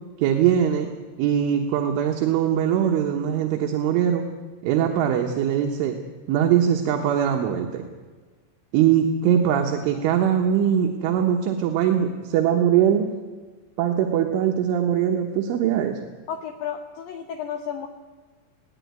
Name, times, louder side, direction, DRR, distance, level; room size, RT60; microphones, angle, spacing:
voice 1, 0.2-0.9 1.2-4.3 4.6-6.0 6.3-7.8 8.7-13.1 13.8-16.0, right 9 dB, 80° right, 2 dB, 3.7 m, -21 dB
voice 2, 16.3-17.9, left 8 dB, 85° left, 7 dB, 1.9 m, -32 dB
20.0 x 17.0 x 9.6 m, 1.4 s
omnidirectional pair, 5.7 m